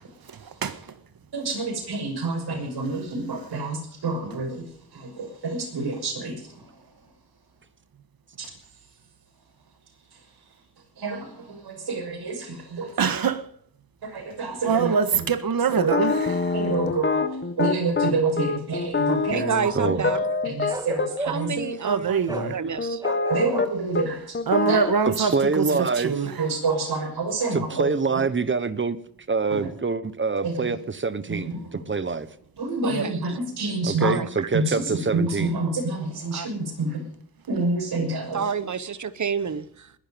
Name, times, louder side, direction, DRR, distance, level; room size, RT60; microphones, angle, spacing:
voice 1, 1.3-4.7 4.9-6.8 8.4-8.5 11.0-12.9 14.0-15.3 15.7-16.0 16.5-17.2 17.6-20.1 20.4-21.5 23.3-24.4 24.6-24.8 25.2-25.3 25.7-25.8 26.4-27.8 28.1-28.2 30.4-30.5 31.3-31.8 32.6-34.2 34.5-37.0 37.5-38.4, right 3 dB, 90° right, 6.2 m, -28 dB
voice 2, 13.0-13.4 14.6-16.6 21.8-22.5 24.5-26.3 32.9-33.0, right 6 dB, 65° right, 1.7 m, -24 dB
sound 1, 15.8-21.1 21.6-21.8 22.3-23.7 23.9-24.1 24.3-24.9, left 4 dB, 30° left, 1.4 m, -25 dB
voice 3, 19.3-20.3 21.2-23.0 32.8-33.4 34.0-34.5 36.3-36.5 38.3-39.9, right 6 dB, 50° right, 1.2 m, -29 dB
Bark, 20.7-21.6 22.3-22.5 23.0-23.7 24.8-25.1, right 2 dB, 10° right, 2.0 m, -34 dB
voice 4, 25.0-26.2 27.5-29.0 29.3-32.3 33.8-35.5, right 4 dB, 30° right, 1.2 m, -25 dB
21.0 x 11.5 x 5.3 m
wide cardioid pair, 120°, 37 cm